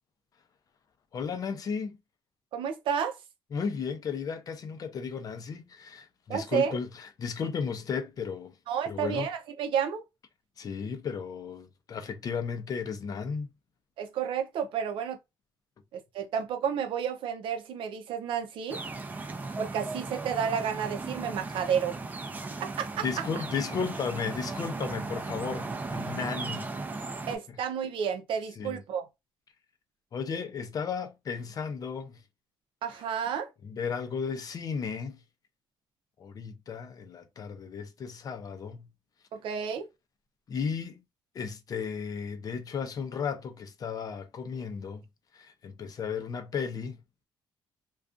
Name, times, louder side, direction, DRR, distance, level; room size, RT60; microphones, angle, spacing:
voice 1, 1.1-2.0 3.5-8.5 8.9-9.3 10.6-13.5 23.0-26.7 28.6-28.8 30.1-32.2 33.6-35.2 36.2-38.9 40.5-41.0 41.3-45.0 45.3-47.0, left 6 dB, 45° left, 0.5 m, -34 dB
voice 2, 2.5-3.2 6.3-6.8 8.7-10.0 14.0-15.2 15.9-18.8 19.6-22.0 22.6-23.0 27.3-29.1 32.8-33.5 39.3-39.9, right 7 dB, 75° right, 0.5 m, -31 dB
sound 1, 18.7-27.4, right 3 dB, 20° right, 0.4 m, -36 dB
2.5 x 2.3 x 2.4 m
cardioid pair, 125°, 9 cm